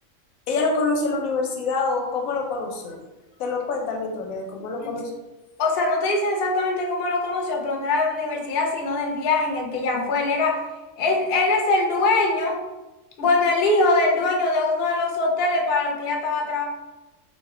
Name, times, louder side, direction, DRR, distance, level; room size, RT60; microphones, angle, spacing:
voice 1, 0.5-3.0 3.4-5.0, left 3 dB, 90° left, 1 dB, 1.0 m, -26 dB
voice 2, 5.6-10.7 11.0-12.6 13.2-16.6, left 3 dB, 60° left, 1 dB, 0.7 m, -22 dB
2.4 x 2.1 x 3.5 m, 1.1 s
omnidirectional pair, 1.4 m